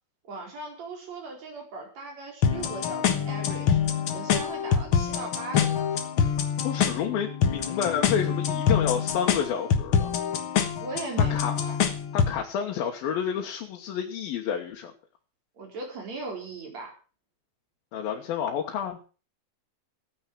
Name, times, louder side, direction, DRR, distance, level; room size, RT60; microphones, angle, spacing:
voice 1, 0.2-3.8 4.1-6.0 10.8-11.8 15.6-16.9, right 3 dB, 50° right, 1 dB, 5.5 m, -38 dB
sound 1, 2.4-12.4, left 7 dB, 60° left, 1.3 m, -25 dB
voice 2, 6.6-10.1 11.3-11.6 12.1-14.9 17.9-19.0, left 8 dB, 85° left, 1 dB, 3.1 m, -30 dB
15.0 x 9.5 x 6.1 m, 0.37 s
omnidirectional pair, 4.2 m